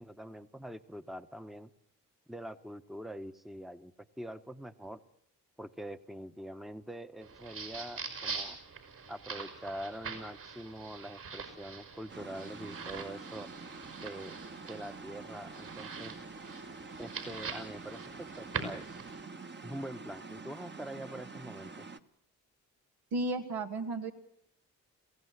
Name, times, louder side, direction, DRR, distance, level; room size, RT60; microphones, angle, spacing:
voice 1, 0.0-1.7 2.3-5.0 5.6-8.6 9.1-13.5 14.0-14.4 14.7-16.1 17.0-19.0 19.6-21.9, right 1 dB, ahead, 11 dB, 1.0 m, -44 dB
sound 1, 7.2-19.2, right 5 dB, 60° right, 5.5 m, -43 dB
sound 2, 12.1-22.0, right 4 dB, 30° right, 1.3 m, -47 dB
voice 2, 23.1-24.1, right 2 dB, 80° right, 3 dB, 2.3 m, -33 dB
22.5 x 16.0 x 8.2 m, 0.70 s
supercardioid pair, 55°, 37 cm